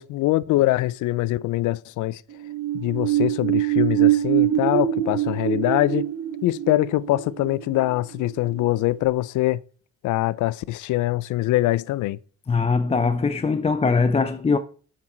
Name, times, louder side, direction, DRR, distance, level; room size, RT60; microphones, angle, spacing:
voice 1, 0.0-2.2 2.7-6.1 6.4-9.6 10.0-12.2, left 16 dB, 80° left, 0.5 m, -23 dB
sound 1, 2.3-8.7 9.0-9.1, right 12 dB, 55° right, 0.6 m, -24 dB
voice 2, 12.5-14.6, left 4 dB, 20° left, 0.5 m, -21 dB
7.5 x 5.9 x 4.3 m
cardioid pair, 90°, 30 cm